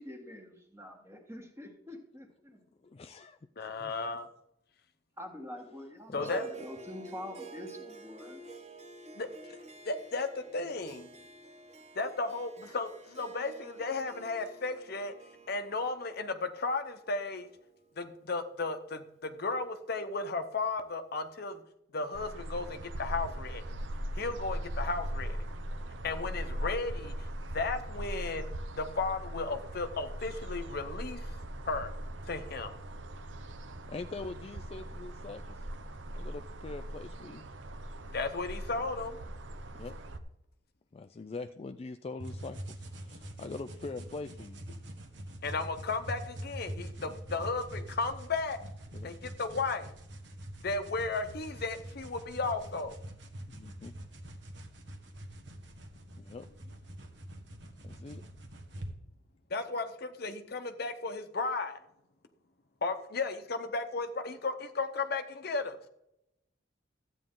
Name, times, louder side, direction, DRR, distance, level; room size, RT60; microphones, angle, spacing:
voice 1, 0.0-2.6 5.2-8.5, left 1 dB, 15° right, 3 dB, 1.6 m, -45 dB
voice 2, 2.8-3.9 6.1-6.3 33.9-35.7 36.1-37.4 39.7-40.0 40.9-44.6 47.0-47.1 48.9-49.1 53.5-53.9 56.2-56.5 57.8-58.2, left 3 dB, 30° left, 7 dB, 0.4 m, -43 dB
voice 3, 3.6-4.3 6.1-6.4 9.2-9.3 9.9-10.3 10.5-11.0 12.0-12.9 13.2-15.1 15.5-17.5 18.0-21.6 21.9-23.6 24.2-25.4 26.0-27.1 27.5-31.2 31.7-31.9 32.3-32.7 38.1-39.1 45.4-48.6 49.0-49.9 50.6-52.9 59.5-61.8 62.8-65.7, left 3 dB, 55° left, 9 dB, 0.8 m, -34 dB
Harp, 6.2-18.8, right 4 dB, 35° right, 1.1 m, -50 dB
sound 1, 22.1-40.2, right 1 dB, 80° right, 0.9 m, -40 dB
sound 2, 42.2-58.9, right 1 dB, 65° right, 1.5 m, -45 dB
13.0 x 8.9 x 3.8 m, 0.83 s
head